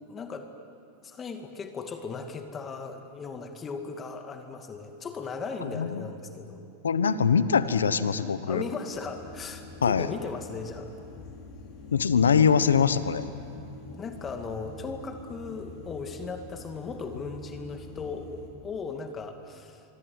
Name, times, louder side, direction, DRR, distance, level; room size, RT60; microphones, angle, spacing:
voice 1, 0.1-0.5 1.0-6.6 8.5-10.9 14.0-19.8, left 4 dB, 25° left, 5 dB, 2.2 m, -37 dB
voice 2, 5.7-6.1 6.8-8.6 9.8-10.1 11.9-13.2, left 6 dB, 90° left, 13 dB, 1.1 m, -23 dB
sound 1, 8.9-18.5, left 3 dB, 45° left, 6.0 m, -45 dB
26.0 x 23.5 x 9.7 m, 2.7 s
hypercardioid pair, 105°, 0 cm